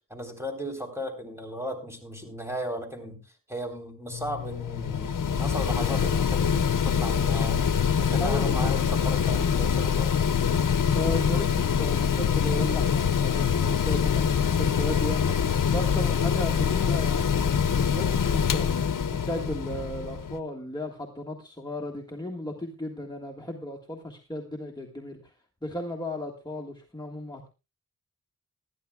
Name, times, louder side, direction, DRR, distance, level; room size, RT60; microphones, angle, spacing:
voice 1, 0.1-3.2 3.5-10.2, equal, 10° right, 3 dB, 3.8 m, -36 dB
Mechanical fan, 4.1-20.4, left 7 dB, 90° left, 0.6 m, -25 dB
voice 2, 8.2-8.7 10.9-18.7 19.1-25.3 25.6-27.5, left 1 dB, 15° left, 0 dB, 1.7 m, -35 dB
20.0 x 13.0 x 2.3 m, 0.30 s
wide cardioid pair, 65°, 31 cm